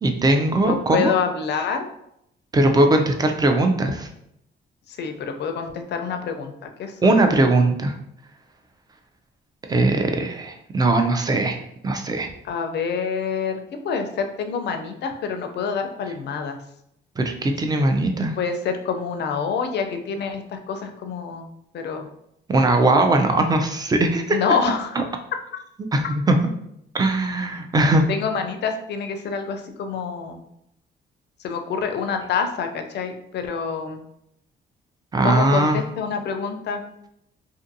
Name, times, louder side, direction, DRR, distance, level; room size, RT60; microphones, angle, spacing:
voice 1, 0.0-1.1 2.5-4.1 7.0-7.9 9.7-11.6 11.8-12.3 17.2-18.3 22.5-24.4 25.0-25.1 25.9-26.4 26.9-28.0 35.1-35.8, right 2 dB, 20° right, 4 dB, 0.4 m, -19 dB
voice 2, 0.6-1.8 4.9-6.5 6.8-7.2 12.4-16.6 18.4-21.5 21.7-22.1 24.3-25.0 28.1-30.4 31.4-34.0 35.2-36.8, left 6 dB, 60° left, 6 dB, 0.5 m, -27 dB
2.5 x 2.5 x 2.6 m, 0.77 s
cardioid pair, 90°, 20 cm